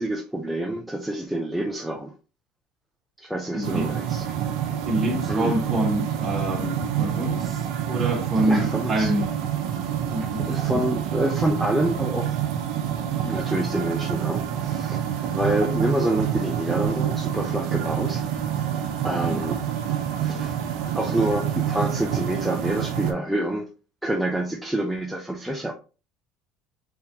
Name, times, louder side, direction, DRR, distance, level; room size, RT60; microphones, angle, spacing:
voice 1, 0.0-2.1 3.2-4.3 5.3-5.6 8.5-9.1 10.4-12.4 13.0-18.2 19.0-19.6 20.1-20.6 20.9-23.7 24.0-25.7, right 1 dB, 5° right, 0.4 m, -27 dB
voice 2, 3.5-3.9 4.9-9.3 10.1-11.0 19.3-19.4, right 1 dB, 20° right, 1.1 m, -27 dB
sound 1, 3.6-23.1, right 9 dB, 60° right, 0.7 m, -27 dB
3.4 x 3.4 x 2.9 m
cardioid pair, 155°, 0 cm